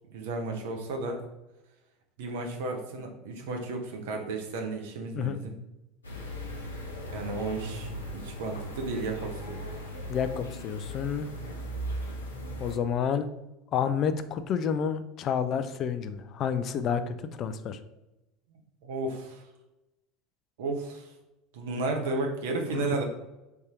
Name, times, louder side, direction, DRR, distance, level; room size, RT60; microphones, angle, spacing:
voice 1, 0.1-1.2 2.2-5.5 7.1-9.6 18.5-19.5 20.6-21.1 21.5-23.0, right 3 dB, 70° right, 3 dB, 0.8 m, -33 dB
sound 1, 6.0-12.8, equal, 85° left, 0.7 m, -38 dB
voice 2, 10.1-11.3 12.6-13.3 13.7-17.8 22.7-22.9, left 7 dB, 45° left, 10 dB, 0.4 m, -29 dB
3.5 x 2.7 x 4.7 m, 0.98 s
hypercardioid pair, 75°, 0 cm